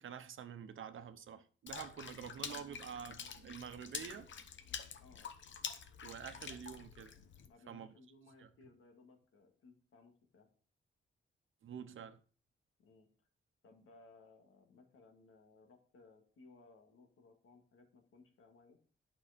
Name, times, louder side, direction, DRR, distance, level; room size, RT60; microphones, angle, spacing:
voice 1, 0.0-4.3 6.0-7.1 7.7-7.9 8.4-8.5 11.6-12.2, right 8 dB, 70° right, 0.9 m, -48 dB
Water / Splash splatter, 1.7-7.5, left 7 dB, 60° left, 0.9 m, -47 dB
voice 2, 5.0-5.3 7.4-10.5 12.8-13.1 13.6-18.8, left 3 dB, 85° left, 2.3 m, -62 dB
11.0 x 5.6 x 5.2 m
wide cardioid pair, 160°, 21 cm